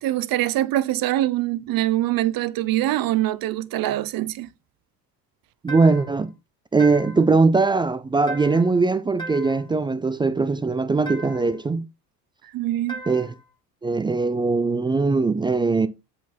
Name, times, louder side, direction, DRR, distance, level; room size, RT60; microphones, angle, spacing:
voice 1, 0.0-4.5 12.5-13.0, right 14 dB, 45° right, 0.7 m, -24 dB
voice 2, 5.6-6.3 6.7-11.9 13.1-13.3 13.8-15.9, right 3 dB, 10° right, 0.3 m, -20 dB
sound 1, 5.7-6.2 6.8-7.3 8.3-8.8 9.2-9.7 11.0-11.6 12.9-13.4, right 2 dB, 10° left, 2.2 m, -37 dB
8.1 x 4.3 x 4.2 m
hypercardioid pair, 65°, 49 cm